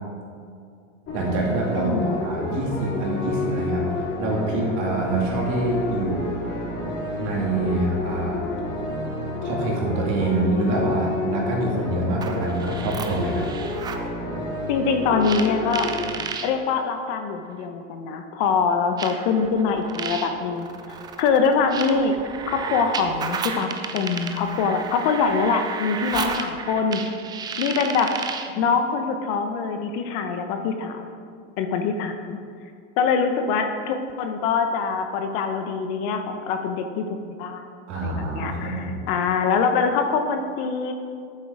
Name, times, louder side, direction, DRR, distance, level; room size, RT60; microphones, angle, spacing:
sound 1, 1.1-16.1, left 2 dB, 30° left, 2.6 m, -30 dB
voice 1, 1.1-3.8 4.2-6.3 7.2-8.4 9.4-13.5 37.9-39.1, right 2 dB, 45° right, -2 dB, 2.7 m, -25 dB
voice 2, 1.8-2.3 14.7-15.9 16.4-20.7 21.2-22.1 22.5-27.0 27.6-28.1 28.6-31.1 31.6-32.4 33.0-37.0 37.4-37.6 38.0-40.9, left 5 dB, 50° left, 6 dB, 1.0 m, -24 dB
sound 2, 12.1-14.1 15.2-16.5 17.6-17.7 19.0-28.6, right 5 dB, 10° right, 0.3 m, -33 dB
8.8 x 7.7 x 5.0 m, 2.3 s
supercardioid pair, 125°, 38 cm